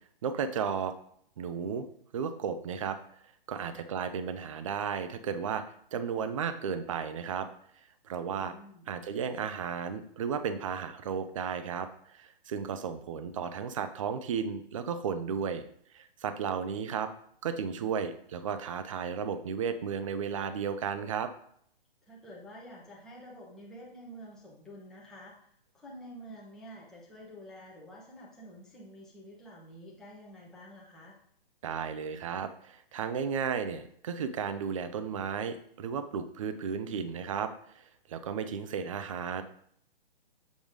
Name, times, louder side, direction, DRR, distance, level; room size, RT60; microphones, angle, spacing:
voice 1, 0.2-0.9 1.4-1.8 2.1-3.0 3.5-5.6 5.9-7.5 8.0-8.5 8.9-11.9 12.1-15.6 15.9-17.1 17.4-21.3 31.6-39.4, right 7 dB, 35° right, 10 dB, 0.5 m, -34 dB
voice 2, 8.3-8.9 22.1-25.5 25.7-31.2, equal, ahead, -6 dB, 0.9 m, -49 dB
7.4 x 3.1 x 5.0 m, 0.66 s
hypercardioid pair, 160°, 29 cm